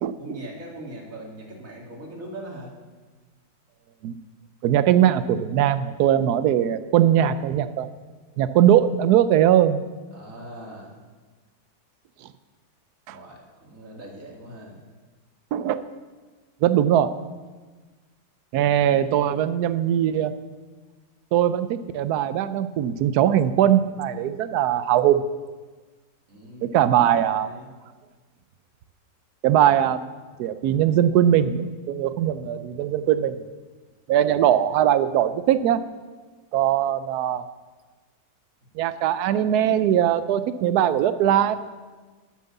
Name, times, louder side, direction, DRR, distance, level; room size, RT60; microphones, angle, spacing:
voice 1, 0.2-2.7 10.1-11.0 13.1-14.8 26.3-27.7, right 1 dB, 45° right, -2 dB, 2.6 m, -41 dB
voice 2, 4.6-7.9 8.4-9.8 13.1-13.2 15.5-15.8 16.6-17.1 18.5-20.3 21.3-25.2 26.6-27.5 29.4-30.1 30.4-33.4 34.1-35.8 36.5-37.4 38.8-41.6, right 10 dB, 70° right, 13 dB, 1.0 m, -20 dB
9.3 x 9.1 x 7.0 m, 1.3 s
omnidirectional pair, 2.1 m